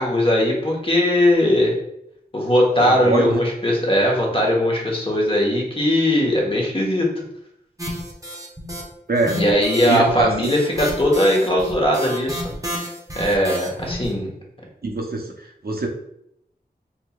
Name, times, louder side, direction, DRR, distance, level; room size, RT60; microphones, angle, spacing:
voice 1, 0.0-1.7 2.3-7.2 9.3-12.4 13.1-14.3, left 1 dB, 30° left, -2 dB, 1.1 m, -19 dB
voice 2, 2.9-3.4 9.1-9.4 9.8-10.5 14.8-15.9, right 2 dB, 60° right, 2 dB, 0.6 m, -23 dB
sound 1, 7.8-8.8 9.2-14.1, equal, 20° right, 0.8 m, -31 dB
4.6 x 2.9 x 2.3 m, 0.76 s
wide cardioid pair, 65°, 17 cm